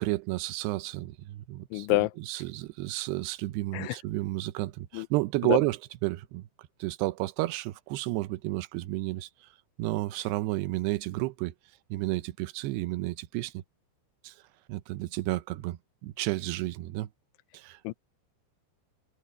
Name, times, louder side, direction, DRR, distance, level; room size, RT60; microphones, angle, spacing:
voice 1, 0.0-6.4 6.8-9.5 9.8-11.5 11.9-13.5 14.2-14.3 14.7-17.1 17.5-17.8, right 18 dB, 90° right, 2.3 m, -31 dB
voice 2, 1.7-2.1 3.7-4.0 4.9-5.1 5.5-5.6 17.9-18.0, left 21 dB, 80° left, 2.8 m, -26 dB
omnidirectional pair, 5.7 m